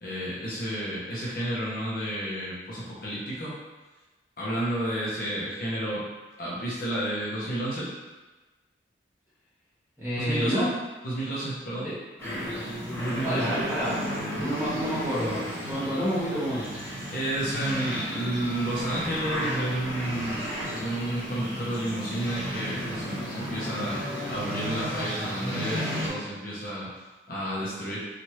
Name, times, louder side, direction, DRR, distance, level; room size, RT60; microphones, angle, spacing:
voice 1, 0.0-3.6 4.4-6.0 6.4-7.9 10.2-10.7 11.0-11.9 12.9-13.6 17.1-24.0 24.3-26.9 27.3-28.1, right 1 dB, 50° left, -7 dB, 0.7 m, -31 dB
voice 2, 10.0-10.7 11.7-12.0 13.2-13.9 14.3-16.6, equal, 10° right, -12 dB, 1.1 m, -29 dB
sound 1, 12.2-26.1, equal, 10° left, 1.1 m, -33 dB
3.0 x 2.5 x 2.9 m, 1.2 s
head